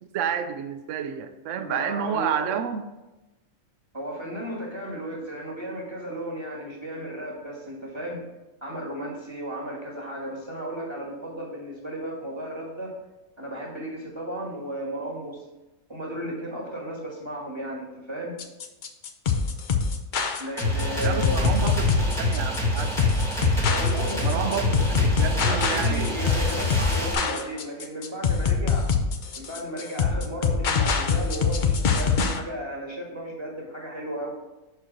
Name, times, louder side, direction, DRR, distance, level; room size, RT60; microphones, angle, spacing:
voice 1, 0.0-2.8 21.0-23.0 24.2-26.1, right 8 dB, 65° right, 9 dB, 0.9 m, -30 dB
voice 2, 1.5-2.6 3.9-8.2 8.6-12.9 13.4-15.4 15.9-18.3 20.4-21.6 23.7-24.6 25.2-28.9 29.4-34.3, right 1 dB, 20° right, -3 dB, 1.4 m, -34 dB
sound 1, 18.4-32.4, left 5 dB, 55° left, 0.5 m, -24 dB
sound 2, 20.6-27.1, left 1 dB, ahead, 1.2 m, -26 dB
5.9 x 4.6 x 5.1 m, 1.0 s
omnidirectional pair, 1.5 m